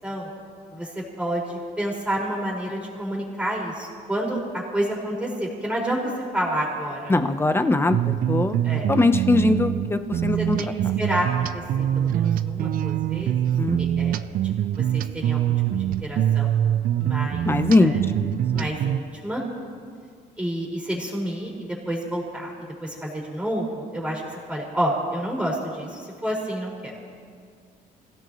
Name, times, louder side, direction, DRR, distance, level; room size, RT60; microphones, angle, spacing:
voice 1, 0.7-7.3 8.6-8.9 10.3-10.7 11.0-13.4 13.8-14.2 14.4-16.6 17.0-17.5 17.8-18.1 18.5-19.4 20.4-22.5 22.8-27.0, right 1 dB, 5° right, -4 dB, 5.2 m, -29 dB
voice 2, 7.1-8.6 8.9-10.6 13.5-13.8 17.5-18.6, left 2 dB, 15° left, 9 dB, 0.9 m, -21 dB
sound 1, 7.9-19.0, right 11 dB, 55° right, 0.5 m, -24 dB
27.0 x 17.0 x 3.1 m, 2.1 s
cardioid pair, 110°, 17 cm